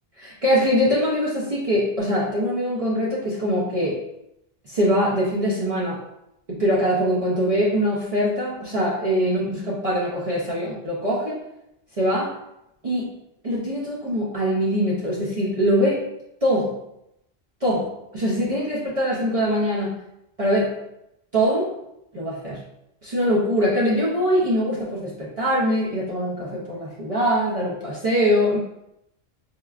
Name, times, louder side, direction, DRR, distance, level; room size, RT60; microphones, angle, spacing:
voice 1, 0.2-4.0 4.7-6.0 6.5-11.4 12.0-12.3 12.8-13.1 13.4-16.0 16.4-16.8 17.6-17.9 18.1-20.0 20.4-20.8 21.3-21.7 22.1-22.6 23.0-28.6, equal, 40° right, -6 dB, 0.7 m, -23 dB
4.5 x 2.2 x 2.4 m, 0.83 s
omnidirectional pair, 1.0 m